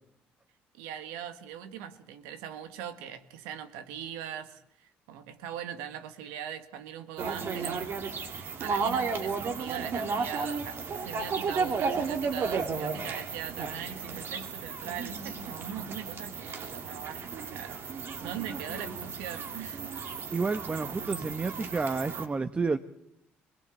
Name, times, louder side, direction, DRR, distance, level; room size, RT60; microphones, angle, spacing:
voice 1, 0.7-8.2 8.6-19.9, right 9 dB, 90° right, 10 dB, 1.7 m, -41 dB
sound 1, 7.2-22.2, right 5 dB, 55° right, 2.9 m, -34 dB
voice 2, 20.3-22.8, right 4 dB, 30° right, 10 dB, 1.1 m, -30 dB
22.0 x 21.0 x 8.3 m, 0.76 s
supercardioid pair, 70°, 5 cm